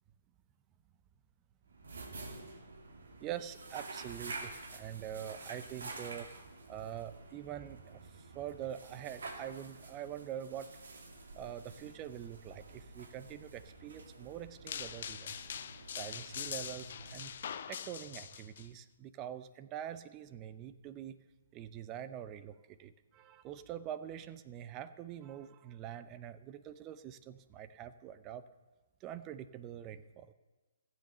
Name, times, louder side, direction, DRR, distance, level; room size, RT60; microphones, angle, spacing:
sound 1, 1.7-17.8, right 3 dB, 85° right, 2.4 m, -49 dB
voice 1, 3.2-6.3 6.7-10.7 11.3-15.5 15.9-17.3 17.7-21.2 21.5-28.5 29.0-30.3, right 10 dB, 25° right, 13 dB, 0.6 m, -45 dB
sound 2, 14.7-18.7, left 8 dB, 55° left, 0.6 m, -43 dB
15.0 x 7.8 x 6.7 m, 1.2 s
hypercardioid pair, 155°, 0 cm